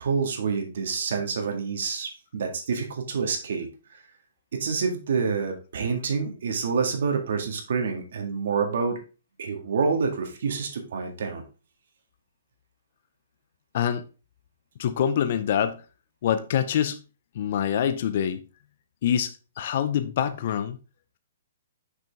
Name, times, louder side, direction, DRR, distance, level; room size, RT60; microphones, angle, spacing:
voice 1, 0.0-4.0 4.5-9.0 9.4-11.4, right 5 dB, 60° right, 1.8 m, -27 dB
voice 2, 14.8-15.8 16.2-17.0 17.3-18.4 19.0-20.8, left 9 dB, 40° left, 0.5 m, -25 dB
6.1 x 5.3 x 3.4 m
hypercardioid pair, 175°, 0 cm